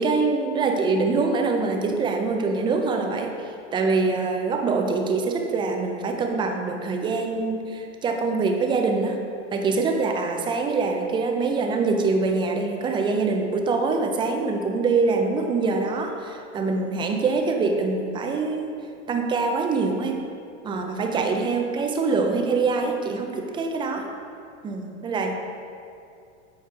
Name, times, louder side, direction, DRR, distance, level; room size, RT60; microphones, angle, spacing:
voice 1, 0.0-9.2 9.5-18.7 19.1-20.2 20.6-24.1 24.6-25.3, right 4 dB, 15° right, 3 dB, 0.4 m, -24 dB
7.4 x 4.3 x 4.6 m, 2.4 s
supercardioid pair, 130°, 37 cm